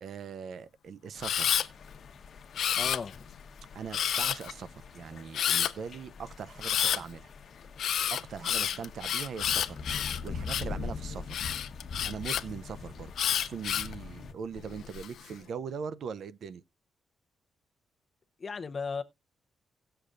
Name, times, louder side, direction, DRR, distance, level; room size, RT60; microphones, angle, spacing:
voice 1, 0.0-1.5 3.7-4.7 4.9-7.3 8.1-9.8 10.2-11.4 12.0-16.6, right 6 dB, 65° right, 0.5 m, -41 dB
sound 1, 1.1-14.3, left 5 dB, 55° left, 1.0 m, -43 dB
Camera, 1.2-1.7 2.6-3.3 3.9-4.5 5.3-5.7 6.6-7.0 7.8-10.8 11.3-12.4 13.2-13.9 14.6-15.1, left 9 dB, 75° left, 0.5 m, -29 dB
voice 2, 2.8-3.3 8.5-8.8 18.4-19.0, left 5 dB, 35° left, 0.7 m, -37 dB
17.5 x 6.7 x 2.5 m
cardioid pair, 115°, 0 cm